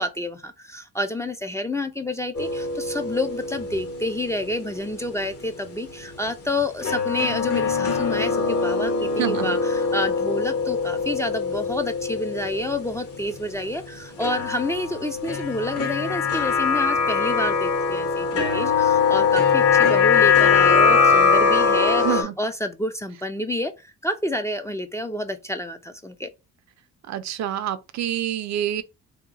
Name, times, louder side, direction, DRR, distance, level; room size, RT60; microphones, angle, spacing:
voice 1, 0.0-26.3, left 1 dB, 10° left, 0.3 m, -29 dB
sound 1, 2.4-4.9 5.2-5.3 6.8-13.3 14.2-22.2, left 5 dB, 50° left, 1.0 m, -22 dB
voice 2, 9.2-9.6 22.0-22.4 27.1-28.8, right 11 dB, 65° right, 0.5 m, -27 dB
2.8 x 2.1 x 3.9 m
cardioid pair, 90°, 30 cm